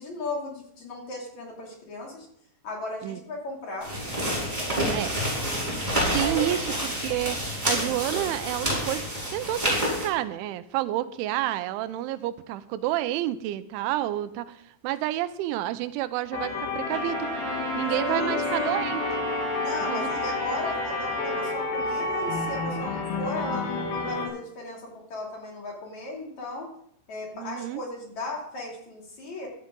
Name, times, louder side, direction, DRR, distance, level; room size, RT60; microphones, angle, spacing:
voice 1, 0.0-2.3 2.6-3.9 4.8-5.3 6.1-6.4 18.1-18.9 19.6-26.7 27.1-29.5, left 2 dB, 45° left, -1 dB, 3.7 m, -36 dB
sound 1, 3.8-10.1, equal, 10° right, 5.1 m, -28 dB
voice 2, 6.0-9.0 9.3-14.6 14.8-17.3 17.8-19.0 19.9-20.1 27.3-27.8, right 14 dB, 90° right, 13 dB, 3.1 m, -29 dB
sound 2, 16.3-24.3, left 3 dB, 85° left, 5.2 m, -30 dB
Trumpet, 16.9-21.6, right 4 dB, 55° right, 2.7 m, -37 dB
16.0 x 13.0 x 3.8 m, 0.69 s
omnidirectional pair, 5.4 m